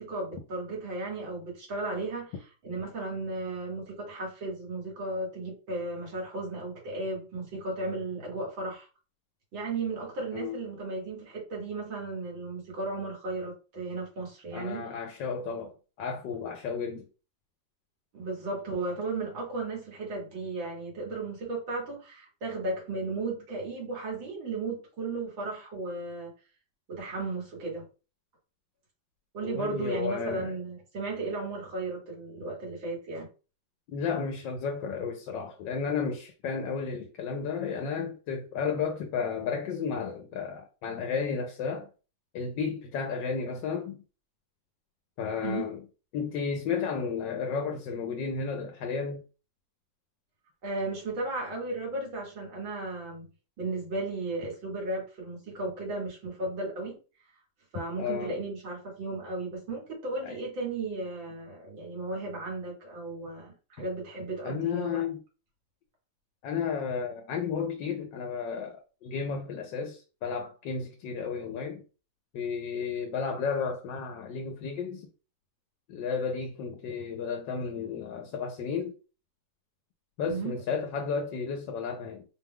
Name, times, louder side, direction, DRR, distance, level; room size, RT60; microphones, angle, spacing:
voice 1, 0.0-2.3 2.6-8.9 9.5-14.9 18.1-26.3 26.9-27.9 29.3-33.3 45.4-45.7 50.6-53.3 53.6-57.0 57.7-65.0 80.2-80.6, right 3 dB, 90° right, 2.5 m, -35 dB
voice 2, 14.5-17.1 29.4-30.5 33.9-41.9 42.3-44.0 45.2-45.8 46.1-49.2 58.0-58.4 60.2-60.4 63.8-63.9 64.4-65.2 66.4-71.8 72.3-75.1 75.9-78.9 80.2-82.2, left 6 dB, 75° left, 1.3 m, -33 dB
4.5 x 2.3 x 3.5 m
omnidirectional pair, 2.0 m